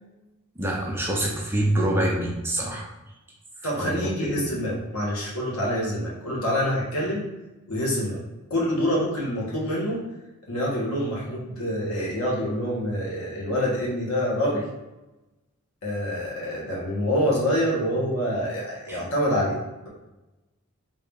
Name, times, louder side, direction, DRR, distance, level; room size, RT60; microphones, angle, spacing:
voice 1, 0.6-2.9 3.8-4.4 18.9-19.0, right 1 dB, 10° right, -2 dB, 0.5 m, -26 dB
voice 2, 3.6-7.3 7.7-8.2 8.5-10.0 10.5-14.6 15.8-19.6, equal, 85° left, -4 dB, 1.4 m, -26 dB
3.7 x 2.8 x 3.5 m, 1.0 s
head